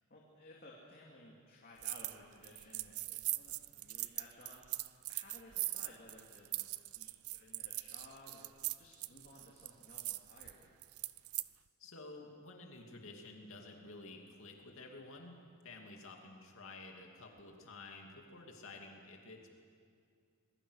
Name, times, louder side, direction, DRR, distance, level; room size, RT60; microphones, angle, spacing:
voice 1, 0.1-8.5 8.8-10.7, left 2 dB, 45° left, -3 dB, 2.8 m, -58 dB
sound 1, 1.8-2.2 2.4-11.5, right 18 dB, 75° right, 0.6 m, -41 dB
voice 2, 11.8-15.4 15.6-19.5, left 2 dB, 65° left, 1 dB, 2.7 m, -51 dB
27.0 x 21.0 x 6.5 m, 2.2 s
head